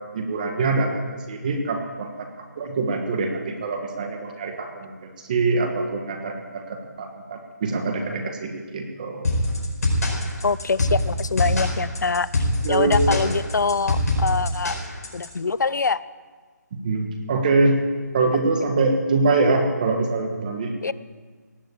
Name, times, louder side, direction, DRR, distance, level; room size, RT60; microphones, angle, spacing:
voice 1, 0.0-9.3 12.6-13.3 16.7-17.8 18.1-20.7, right 3 dB, 25° right, 4 dB, 1.4 m, -24 dB
sound 1, 9.2-15.3, left 1 dB, 60° left, 4.9 m, -23 dB
voice 2, 10.4-12.3 12.7-14.8 15.1-16.0 20.8-20.9, left 4 dB, 75° left, 17 dB, 0.6 m, -24 dB
18.0 x 7.4 x 8.6 m, 1.5 s
figure-of-eight pair, 170°, 10 cm